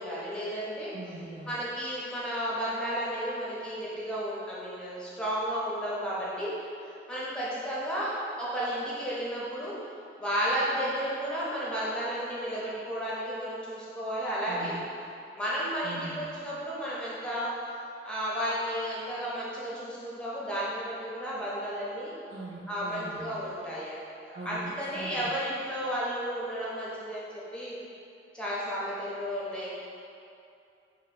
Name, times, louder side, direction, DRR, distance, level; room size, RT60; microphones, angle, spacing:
voice 1, 0.0-0.9 1.5-6.5 6.8-9.7 10.2-14.8 15.3-17.5 18.0-22.1 22.7-27.8 28.3-29.7, equal, 5° left, -7 dB, 0.6 m, -33 dB
voice 2, 0.9-1.6 14.5-14.8 15.8-16.3 22.3-23.5 24.3-24.6 24.9-25.3, right 2 dB, 60° right, -9 dB, 0.5 m, -41 dB
4.2 x 2.1 x 4.0 m, 2.6 s
head